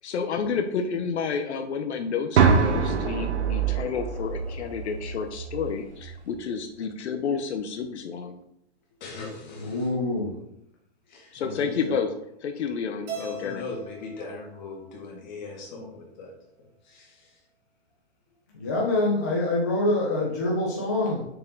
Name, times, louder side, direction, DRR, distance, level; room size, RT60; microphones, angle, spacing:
voice 1, 0.0-8.4 11.3-12.1 12.4-13.7, left 6 dB, 75° left, 6 dB, 0.8 m, -30 dB
sound 1, 2.4-6.3, right 6 dB, 75° right, 1.1 m, -25 dB
voice 2, 9.0-9.9 11.1-11.4 13.1-16.3 16.8-17.4, left 3 dB, 40° left, -2 dB, 2.1 m, -39 dB
voice 3, 9.6-10.3 11.5-11.7 18.5-21.3, left 2 dB, 15° left, -3 dB, 0.4 m, -25 dB
Keyboard (musical), 13.1-15.4, right 5 dB, 10° right, 0.7 m, -41 dB
6.6 x 4.4 x 3.7 m, 0.76 s
hypercardioid pair, 175°, 34 cm